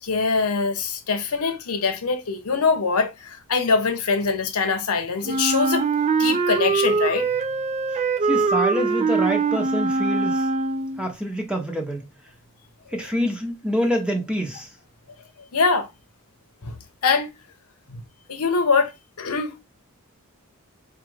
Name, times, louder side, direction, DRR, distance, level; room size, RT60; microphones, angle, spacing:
voice 1, 0.0-5.9 6.2-7.3 15.5-15.9 16.6-16.8 17.0-17.3 17.9-18.0 18.3-18.9 19.2-19.5, left 4 dB, 85° left, 0.8 m, -23 dB
Wind instrument woodwind instrument, 5.2-11.1, right 4 dB, 30° right, 0.3 m, -22 dB
voice 2, 8.2-10.5 11.0-12.1 12.9-14.7, equal, 5° right, 0.9 m, -26 dB
4.5 x 2.4 x 3.2 m
head